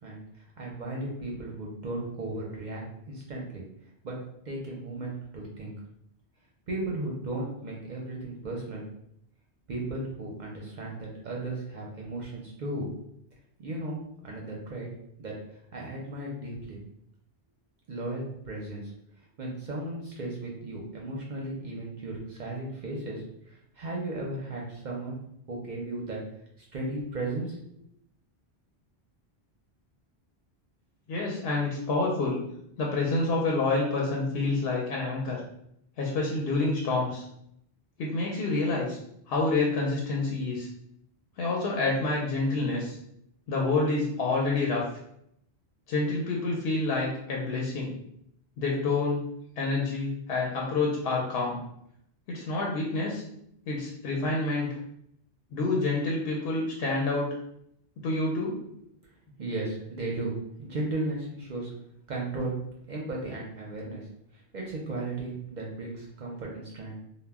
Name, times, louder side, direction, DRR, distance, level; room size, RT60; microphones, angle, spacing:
voice 1, 0.6-3.6 4.0-4.2 4.5-5.7 6.7-8.8 9.7-12.9 13.6-14.0 14.2-14.9 15.2-15.3 15.7-16.8 17.9-18.9 19.4-25.1 25.5-26.2 26.6-27.6 59.4-61.7 62.1-62.5 62.9-64.1 64.3-66.9, right 2 dB, 55° right, -2 dB, 0.6 m, -35 dB
voice 2, 31.1-32.4 32.8-35.4 36.0-37.2 38.0-39.0 39.3-40.7 41.4-43.0 43.5-44.8 45.9-47.9 48.6-49.2 49.6-51.6 52.3-53.2 53.7-54.7 55.5-57.3 58.0-58.6, left 3 dB, 70° left, -2 dB, 0.8 m, -28 dB
2.1 x 2.1 x 3.4 m, 0.73 s
omnidirectional pair, 1.1 m